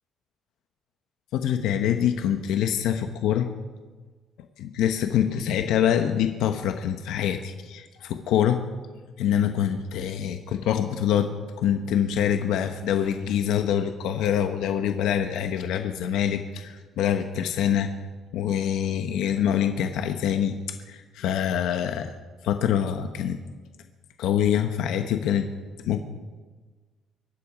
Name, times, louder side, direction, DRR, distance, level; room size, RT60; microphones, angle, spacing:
voice 1, 1.3-3.5 4.6-8.6 9.2-11.3 11.6-17.9 18.3-20.6 20.9-22.1 22.4-23.4 24.2-25.5 25.8-26.0, left 9 dB, 80° left, 6 dB, 1.0 m, -25 dB
24.0 x 10.0 x 5.0 m, 1.4 s
cardioid pair, 145°, 0 cm